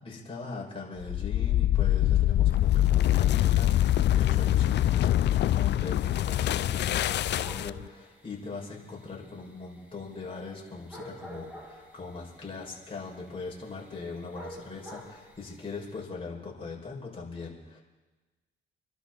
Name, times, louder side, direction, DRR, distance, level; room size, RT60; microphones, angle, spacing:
voice 1, 0.0-17.8, left 4 dB, 25° left, -3 dB, 5.6 m, -41 dB
sound 1, 1.0-7.9, left 13 dB, 60° left, 0.4 m, -24 dB
sound 2, 5.7-16.0, equal, 10° right, 4.8 m, -50 dB
26.5 x 12.0 x 4.1 m, 1.2 s
cardioid pair, 90°, 20 cm